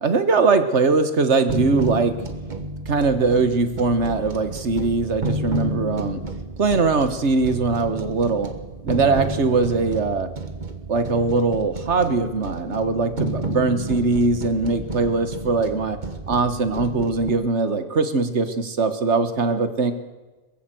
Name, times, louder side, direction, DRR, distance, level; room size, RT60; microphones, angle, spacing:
voice 1, 0.0-2.1 2.9-6.2 6.6-8.5 8.8-10.3 10.9-16.0 16.3-19.9, right 3 dB, 70° right, 10 dB, 1.7 m, -21 dB
sound 1, 1.5-17.3, right 2 dB, 40° right, 1.6 m, -31 dB
22.5 x 15.0 x 7.8 m, 1.2 s
omnidirectional pair, 1.2 m